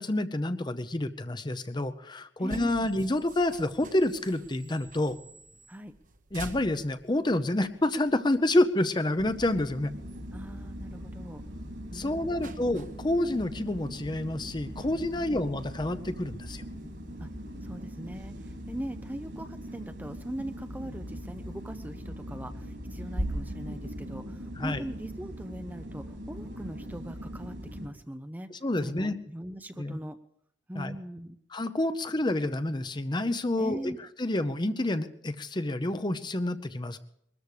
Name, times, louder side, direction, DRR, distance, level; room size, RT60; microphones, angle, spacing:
voice 1, 0.0-5.2 6.3-9.9 11.9-16.6 24.6-24.8 28.5-29.2 29.8-30.0 30.8-31.0 31.5-33.9 34.2-37.0, left 1 dB, 25° left, 11 dB, 0.7 m, -28 dB
voice 2, 2.4-2.9 5.7-5.9 10.3-11.4 11.9-12.6 15.1-15.4 17.2-17.3 17.6-28.5 28.8-30.2 30.7-31.4 33.6-34.0, right 1 dB, 10° right, 8 dB, 0.6 m, -41 dB
sound 1, 2.5-22.1, right 2 dB, 45° right, 1.0 m, -52 dB
sound 2, 9.2-27.9, equal, 80° right, 4.4 m, -40 dB
21.5 x 13.5 x 4.9 m, 0.72 s
head